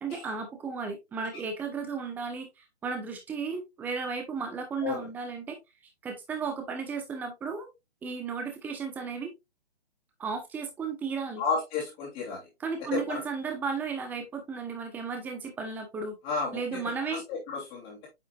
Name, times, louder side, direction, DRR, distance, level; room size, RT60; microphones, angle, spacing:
voice 1, 0.0-5.6 6.0-7.7 8.0-9.3 10.2-11.4 12.6-16.2 16.5-17.2, right 5 dB, 5° right, 6 dB, 0.9 m, -34 dB
voice 2, 11.4-12.5 12.9-13.2 16.2-16.8 17.1-18.1, left 4 dB, 20° left, -5 dB, 2.8 m, -32 dB
9.0 x 5.6 x 2.4 m, 0.21 s
figure-of-eight pair, 145°, 33 cm